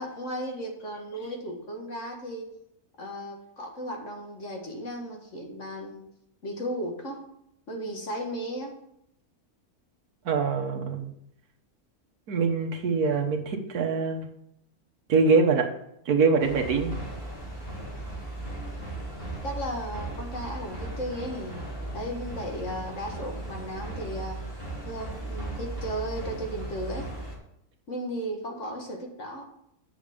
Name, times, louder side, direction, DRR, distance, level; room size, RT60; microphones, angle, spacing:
voice 1, 0.0-2.5 3.0-6.1 6.4-7.2 7.7-8.8 17.9-18.1 19.4-21.6 21.9-24.5 24.8-27.1 27.9-29.5, equal, 55° left, 1 dB, 1.9 m, -35 dB
voice 2, 10.2-11.1 12.3-14.3 15.1-15.7 16.1-16.9, right 4 dB, 85° right, 2 dB, 1.6 m, -24 dB
sound 1, 16.4-27.4, right 2 dB, 40° left, 3.3 m, -37 dB
8.9 x 6.5 x 5.1 m, 0.76 s
omnidirectional pair, 1.6 m